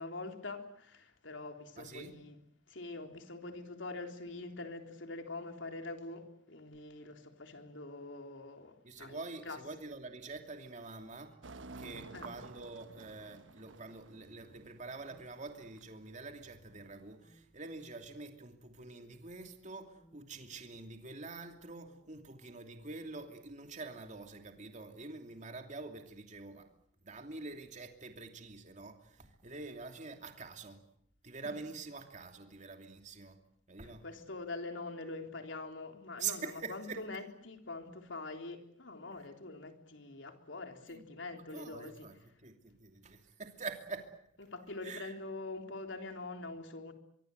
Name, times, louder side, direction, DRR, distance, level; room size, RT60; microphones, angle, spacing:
voice 1, 0.0-2.4 2.7-9.2 9.4-9.6 12.1-12.3 33.8-42.1 44.4-46.9, left 3 dB, 85° left, 3.7 m, -44 dB
voice 2, 1.8-2.1 8.8-11.3 11.8-26.7 27.0-30.8 31.2-33.4 33.7-34.0 36.2-37.0 40.9-41.0 41.5-44.1 44.8-45.2, right 4 dB, 40° right, 2.8 m, -46 dB
sound 1, 11.4-17.1, right 3 dB, 85° right, 1.2 m, -52 dB
sound 2, 14.2-15.3 15.6-16.0 16.4-17.0 17.2-17.4 17.8-18.2 18.6-23.0, equal, 40° left, 4.4 m, -67 dB
24.5 x 23.5 x 8.0 m
head